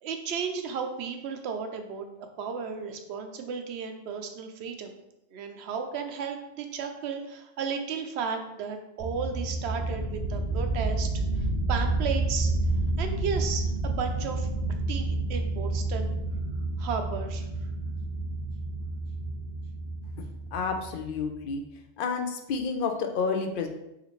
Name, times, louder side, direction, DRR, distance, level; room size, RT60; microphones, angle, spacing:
voice 1, 0.0-2.1 2.4-5.0 5.3-11.1 11.4-12.5 13.0-14.5 14.9-16.1 16.8-17.5, right 6 dB, 70° right, 5 dB, 0.8 m, -34 dB
sound 1, 9.0-21.4, right 2 dB, 85° left, 1.4 m, -30 dB
voice 2, 20.2-21.6 22.0-23.7, left 5 dB, 60° left, 5 dB, 0.6 m, -30 dB
4.9 x 2.5 x 3.1 m, 0.88 s
omnidirectional pair, 1.2 m